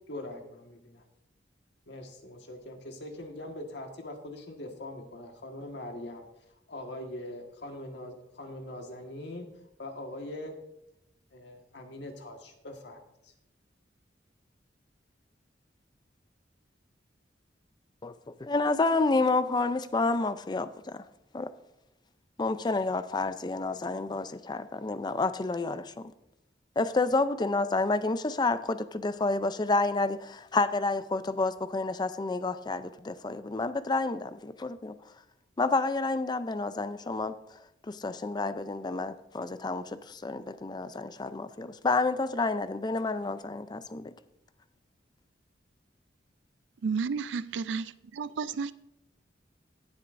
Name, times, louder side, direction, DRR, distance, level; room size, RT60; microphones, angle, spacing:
voice 1, 0.1-1.0 1.9-6.2 6.7-9.5 9.8-10.6 11.3-13.3, left 1 dB, 70° left, 1.5 m, -42 dB
voice 2, 18.4-21.0 21.3-21.5 22.4-26.1 26.8-34.9 35.6-37.4 37.9-44.1, left 3 dB, 25° left, 0.4 m, -29 dB
voice 3, 46.8-48.7, right 5 dB, 85° right, 0.4 m, -32 dB
18.0 x 7.9 x 2.6 m
head